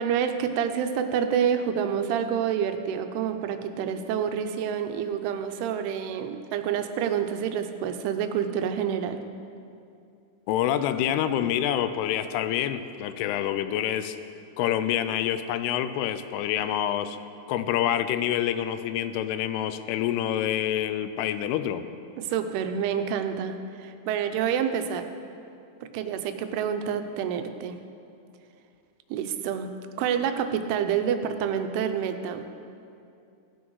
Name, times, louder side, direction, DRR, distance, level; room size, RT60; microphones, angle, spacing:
voice 1, 0.0-9.2 22.2-25.1 25.9-27.8 29.1-29.7 30.0-32.5, right 8 dB, 90° right, 8 dB, 2.6 m, -28 dB
voice 2, 10.5-14.2 14.6-17.2 17.5-21.9, left 11 dB, 90° left, 11 dB, 2.6 m, -27 dB
17.0 x 6.3 x 4.6 m, 2.5 s
omnidirectional pair, 4.6 m